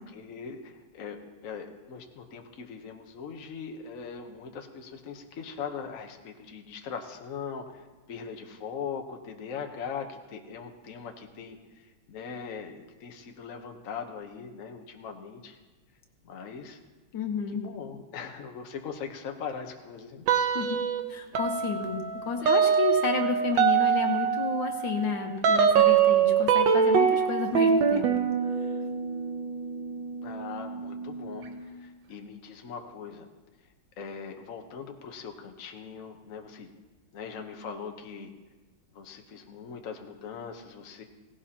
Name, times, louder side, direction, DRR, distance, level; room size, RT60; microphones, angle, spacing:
voice 1, 0.0-15.6 16.2-16.8 17.5-20.3 30.2-33.3 34.0-36.7 37.1-38.3 38.9-41.0, left 6 dB, 50° left, 4 dB, 1.3 m, -40 dB
voice 2, 17.1-17.6 20.5-20.8 21.1-28.1, left 5 dB, 80° left, 4 dB, 1.9 m, -31 dB
sound 1, 20.3-21.0 21.4-31.7, right 7 dB, 80° right, 1.6 m, -25 dB
17.0 x 16.5 x 2.9 m, 1.2 s
omnidirectional pair, 2.0 m